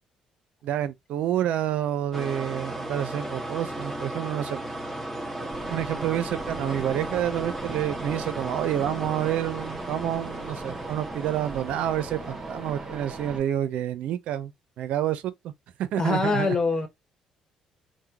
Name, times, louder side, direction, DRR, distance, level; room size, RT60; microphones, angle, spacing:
voice 1, 0.6-4.7 5.5-14.5 14.8-15.5 15.8-16.6, right 11 dB, 75° right, 0.5 m, -28 dB
sound 1, 2.1-13.3, right 1 dB, ahead, 1.4 m, -36 dB
Helicopter Flyby Distant A, 5.5-13.4, right 3 dB, 30° right, 1.3 m, -39 dB
voice 2, 16.0-16.9, left 3 dB, 30° left, 1.2 m, -24 dB
3.6 x 2.2 x 2.8 m
supercardioid pair, 80°, 2 cm